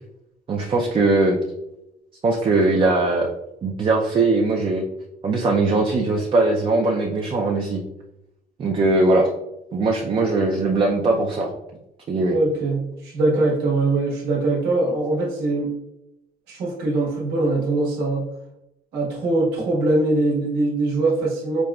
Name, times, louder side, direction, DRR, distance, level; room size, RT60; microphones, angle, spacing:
voice 1, 0.5-1.4 2.2-3.3 3.6-4.8 5.2-7.8 8.6-9.3 9.7-11.5 12.1-12.3, right 2 dB, 30° right, 0 dB, 0.4 m, -20 dB
voice 2, 12.3-15.7 16.5-18.3 18.9-21.6, right 2 dB, 80° right, -3 dB, 1.2 m, -22 dB
5.1 x 2.1 x 2.3 m, 0.85 s
cardioid pair, 110°, 17 cm